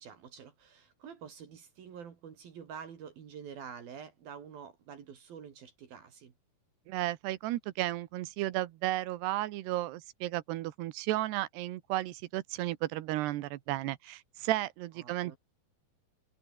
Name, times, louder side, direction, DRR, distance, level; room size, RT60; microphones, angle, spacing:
voice 1, 0.0-6.3 15.0-15.4, right 7 dB, 65° right, 4.4 m, -47 dB
voice 2, 6.9-15.4, right 16 dB, 90° right, 3.2 m, -33 dB
omnidirectional pair, 4.6 m